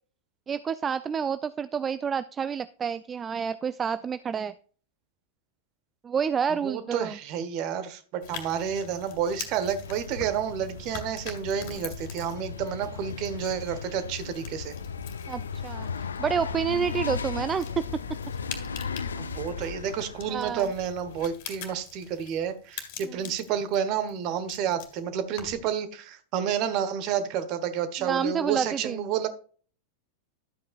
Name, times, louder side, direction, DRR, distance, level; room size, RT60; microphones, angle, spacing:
voice 1, 0.5-4.5 6.0-7.2 15.3-17.8 20.3-20.7 23.0-23.2 28.0-29.0, right 7 dB, 20° right, 15 dB, 0.4 m, -29 dB
voice 2, 6.5-14.7 19.2-29.3, right 8 dB, 40° right, 12 dB, 1.3 m, -30 dB
sound 1, 8.2-25.7, left 7 dB, 45° left, 2.3 m, -45 dB
sound 2, 9.8-21.3, left 5 dB, 70° left, 0.6 m, -36 dB
12.5 x 8.3 x 2.5 m, 0.41 s
figure-of-eight pair, 90°, 0 cm